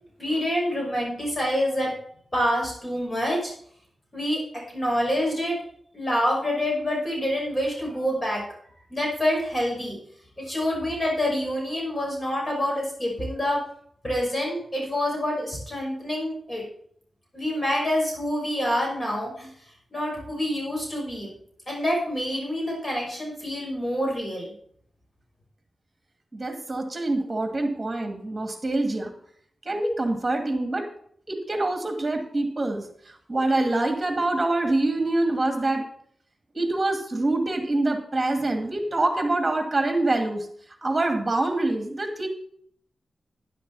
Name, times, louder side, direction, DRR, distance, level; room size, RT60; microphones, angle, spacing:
voice 1, 0.2-1.9 2.3-3.5 4.1-4.4 4.7-5.6 5.9-8.4 8.9-10.0 10.4-13.6 14.0-16.6 17.3-19.5 19.9-21.3 21.7-24.5, equal, 30° left, -2 dB, 5.9 m, -27 dB
voice 2, 26.3-29.1 29.7-30.9 31.3-32.8 33.3-35.8 36.5-40.5 40.8-42.3, right 2 dB, 30° right, 4 dB, 2.4 m, -25 dB
11.0 x 10.5 x 4.2 m, 0.63 s
cardioid pair, 60°, 0 cm